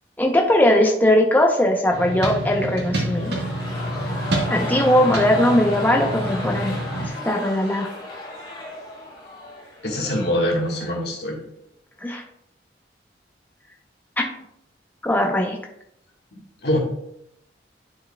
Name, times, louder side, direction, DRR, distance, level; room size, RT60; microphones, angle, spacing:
voice 1, 0.2-3.4 4.5-7.9 12.0-12.2 14.2-14.3 15.0-15.6, left 1 dB, 10° left, 1 dB, 0.6 m, -19 dB
sound 1, 1.9-7.1, right 1 dB, 65° right, 1.4 m, -28 dB
sound 2, 3.0-11.1 11.4-11.5, left 1 dB, 30° left, 2.0 m, -34 dB
voice 2, 9.8-11.4 16.3-16.8, left 1 dB, 60° left, -1 dB, 1.5 m, -24 dB
10.0 x 4.6 x 2.2 m, 0.77 s
head